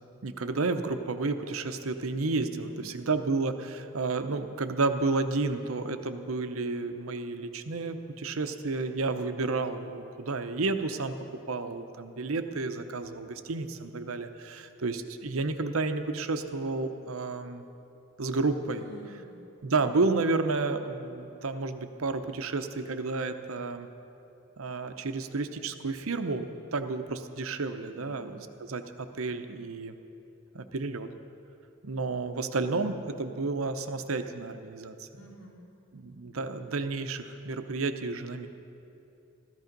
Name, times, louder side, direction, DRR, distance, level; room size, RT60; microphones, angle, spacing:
voice 1, 0.2-11.1 11.5-17.6 18.2-18.8 19.6-23.9 24.6-29.9 30.5-31.1 31.8-35.1 35.9-38.5, right 3 dB, 80° right, 8 dB, 0.8 m, -31 dB
voice 2, 2.6-3.1 18.8-19.4 28.0-28.4 35.2-35.7, right 3 dB, 85° left, -4 dB, 3.3 m, -50 dB
14.0 x 14.0 x 5.3 m, 2.8 s
head